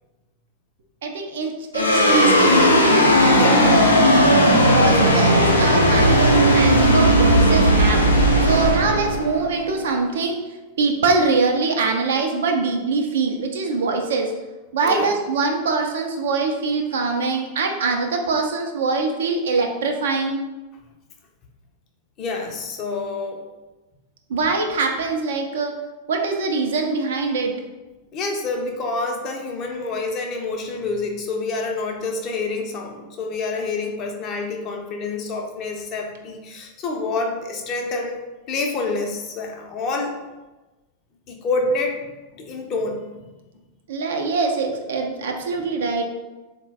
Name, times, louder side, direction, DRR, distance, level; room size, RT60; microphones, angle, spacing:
voice 1, 1.0-3.0 3.4-3.8 4.7-8.0 8.4-10.4 10.8-14.3 14.7-20.4 24.3-25.7 26.1-27.5 43.9-46.0, right 4 dB, 60° right, 3 dB, 0.5 m, -23 dB
sound 1, 1.7-10.3, equal, 80° left, 0.4 m, -16 dB
voice 2, 3.3-3.7 6.8-6.9 14.8-15.1 22.2-23.4 28.1-38.2 38.5-40.2 41.3-42.1 42.3-43.3, left 3 dB, 35° left, 2 dB, 0.6 m, -27 dB
3.8 x 2.1 x 3.4 m, 1.1 s
figure-of-eight pair, 90°, 0 cm